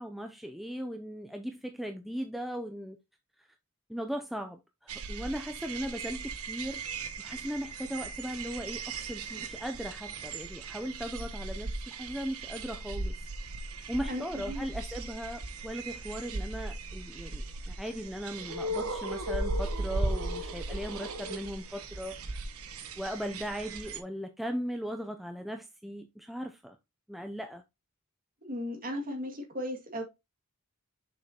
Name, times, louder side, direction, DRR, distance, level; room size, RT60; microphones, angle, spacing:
voice 1, 0.0-3.0 3.9-6.8 7.2-13.3 13.9-22.5 23.0-26.8 27.1-27.6, equal, ahead, 0.4 m, -38 dB
sound 1, 4.9-24.0, right 2 dB, 80° right, 1.1 m, -37 dB
voice 2, 14.1-14.6 28.4-30.0, equal, 40° right, 2.2 m, -36 dB
6.8 x 5.5 x 2.9 m
head